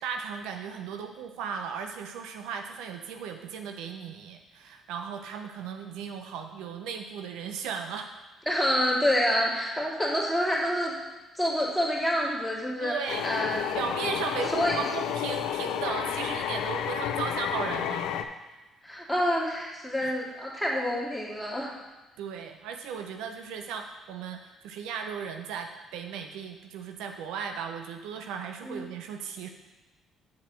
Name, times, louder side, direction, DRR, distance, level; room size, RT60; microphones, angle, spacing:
voice 1, 0.0-8.1 12.8-13.2 13.7-18.1 18.4-18.6 20.0-20.1 22.2-29.5, right 6 dB, 85° right, 6 dB, 0.6 m, -36 dB
voice 2, 8.5-11.0 11.4-12.9 13.2-13.6 14.5-14.8 18.8-21.7 28.6-28.8, equal, ahead, -4 dB, 2.3 m, -27 dB
sound 1, 13.1-18.2, left 10 dB, 80° left, 0.4 m, -31 dB
7.3 x 4.4 x 6.2 m, 1.1 s
cardioid pair, 85°, 0 cm